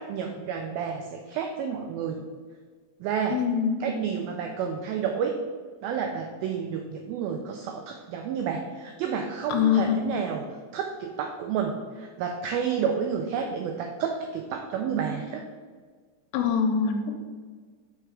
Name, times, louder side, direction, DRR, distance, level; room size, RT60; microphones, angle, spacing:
voice 1, 0.0-2.2 3.0-3.4 3.8-5.3 5.8-10.4 10.7-15.4, right 7 dB, 85° right, 3 dB, 2.1 m, -30 dB
voice 2, 3.3-3.8 9.5-9.9 16.3-17.1, left 7 dB, 90° left, 4 dB, 3.1 m, -23 dB
6.6 x 6.0 x 4.7 m, 1.5 s
omnidirectional pair, 4.8 m